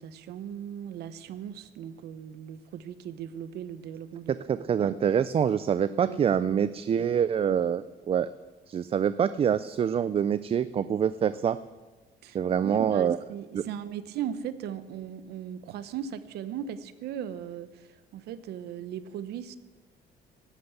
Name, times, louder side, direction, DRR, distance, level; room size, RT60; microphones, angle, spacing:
voice 1, 0.0-4.3 4.8-4.9 6.0-6.2 12.2-19.6, right 9 dB, 75° right, 13 dB, 0.9 m, -38 dB
voice 2, 4.3-8.3 8.7-11.6 12.3-13.2 13.5-13.6, right 8 dB, 35° right, 14 dB, 0.4 m, -26 dB
12.0 x 11.5 x 8.2 m, 1.3 s
cardioid pair, 110°, 17 cm